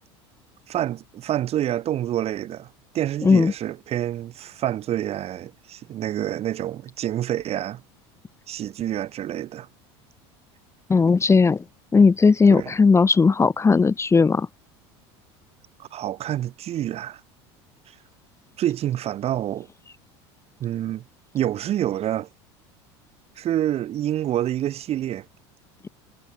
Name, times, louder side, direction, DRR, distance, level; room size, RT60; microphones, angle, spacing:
voice 1, 0.7-2.7 2.9-7.8 8.5-9.7 12.5-12.7 15.8-17.2 18.6-19.7 20.6-21.0 21.3-22.3 23.4-25.2, right 12 dB, 45° right, 4.7 m, -27 dB
voice 2, 3.2-3.5 10.9-11.6 11.9-14.5, left 4 dB, 20° left, 1.7 m, -17 dB
hypercardioid pair, 90°, 14 cm